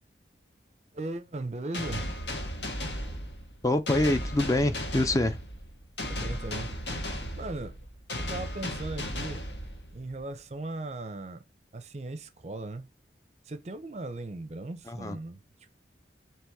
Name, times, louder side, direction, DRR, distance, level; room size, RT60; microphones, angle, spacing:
voice 1, 0.9-2.2 6.1-7.9 8.3-9.5 9.9-11.4 11.7-12.9 13.4-15.4, right 2 dB, 40° right, 0.5 m, -38 dB
sound 1, 1.7-10.2, left 1 dB, 80° left, 1.4 m, -35 dB
voice 2, 3.6-5.4 14.9-15.2, left 1 dB, 20° left, 0.4 m, -25 dB
4.5 x 3.0 x 3.5 m
head